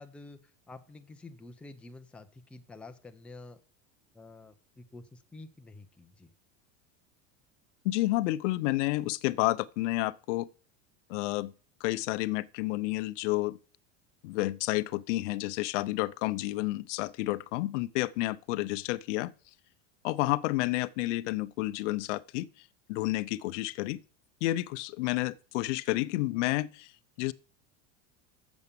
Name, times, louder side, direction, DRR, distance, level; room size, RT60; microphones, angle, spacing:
voice 1, 0.0-3.6 4.1-6.3, left 2 dB, 5° left, 0.5 m, -49 dB
voice 2, 7.8-10.5 11.1-11.5 11.8-13.6 14.2-19.3 20.0-22.5 22.9-24.0 24.4-26.9 27.2-27.3, left 18 dB, 80° left, 0.6 m, -30 dB
7.1 x 6.8 x 6.7 m
supercardioid pair, 150°, 36 cm